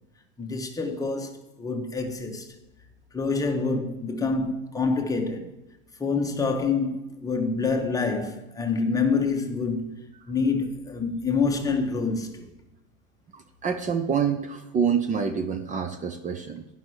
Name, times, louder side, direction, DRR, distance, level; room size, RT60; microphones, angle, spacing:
voice 1, 0.4-2.5 3.1-5.6 6.0-9.9 10.3-12.5, left 4 dB, 10° left, 1.1 m, -27 dB
voice 2, 13.3-16.7, right 7 dB, 25° right, 0.6 m, -27 dB
9.8 x 5.5 x 6.3 m
supercardioid pair, 135°, 29 cm